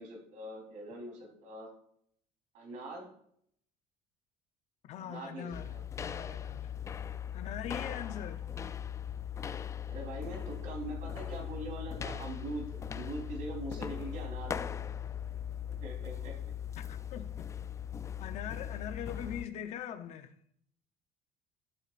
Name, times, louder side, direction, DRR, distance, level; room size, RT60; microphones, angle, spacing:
voice 1, 0.0-1.7 2.5-3.1 5.0-5.8 9.9-14.6 15.8-16.5, right 2 dB, 60° right, 3.6 m, -42 dB
voice 2, 4.8-6.7 7.3-8.4 16.8-17.5 18.2-20.3, left 9 dB, 50° left, 0.7 m, -42 dB
sound 1, 5.5-19.5, left 9 dB, 20° left, 0.3 m, -39 dB
sound 2, 10.6-15.9, right 10 dB, 15° right, 4.1 m, -58 dB
12.0 x 7.6 x 2.5 m
cardioid pair, 155°, 15 cm